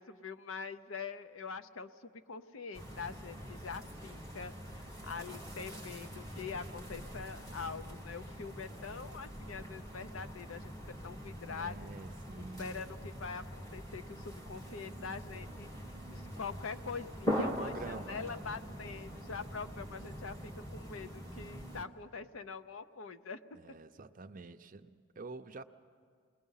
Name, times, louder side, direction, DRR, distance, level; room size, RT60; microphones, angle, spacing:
voice 1, 0.0-10.7 11.0-11.9 12.6-15.7 16.1-23.4, left 5 dB, 80° left, 10 dB, 0.7 m, -44 dB
sound 1, 2.7-21.8, equal, 15° left, 1.5 m, -43 dB
voice 2, 6.5-6.9 11.5-12.9 17.4-18.4 23.5-25.6, right 3 dB, 40° right, 9 dB, 0.5 m, -48 dB
29.0 x 20.5 x 5.6 m, 2.2 s
head